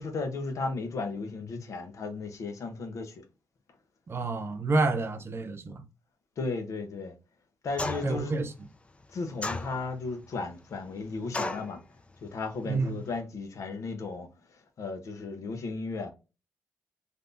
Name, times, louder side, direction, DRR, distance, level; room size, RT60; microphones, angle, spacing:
voice 1, 0.0-3.2 6.4-7.1 7.6-8.3 9.1-11.8 12.2-14.3 14.8-16.1, left 3 dB, 70° left, 0.8 m, -35 dB
voice 2, 4.1-5.8 8.0-8.5 12.7-13.1, right 3 dB, 45° right, 0.7 m, -29 dB
sound 1, 7.8-8.3 9.4-10.1 11.3-11.7, left 2 dB, 20° left, 0.5 m, -33 dB
3.3 x 2.6 x 2.6 m
cardioid pair, 75°, 6 cm